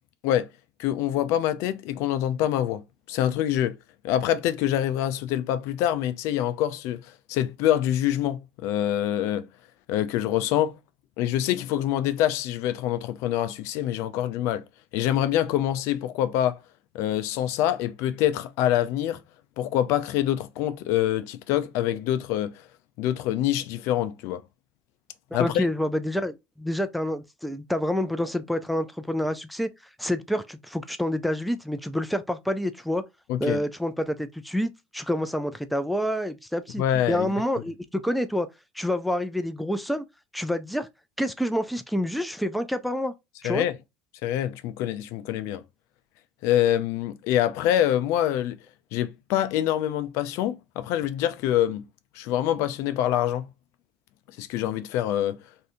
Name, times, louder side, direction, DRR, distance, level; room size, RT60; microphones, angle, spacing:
voice 1, 0.8-2.8 3.1-3.8 4.0-9.5 9.9-10.8 11.2-14.6 14.9-16.6 16.9-19.2 19.6-22.6 23.0-24.4 25.3-25.7 33.3-33.6 36.8-37.3 43.4-43.7 44.2-45.6 46.4-48.6 48.9-51.8 52.2-53.5 54.4-55.4, left 12 dB, 65° left, 0.4 m, -25 dB
voice 2, 25.3-29.7 30.0-33.0 33.4-38.5 38.8-40.1 40.3-40.9 41.2-43.1 43.4-43.6, left 1 dB, ahead, 0.4 m, -28 dB
2.6 x 2.6 x 3.4 m
supercardioid pair, 110°, 5 cm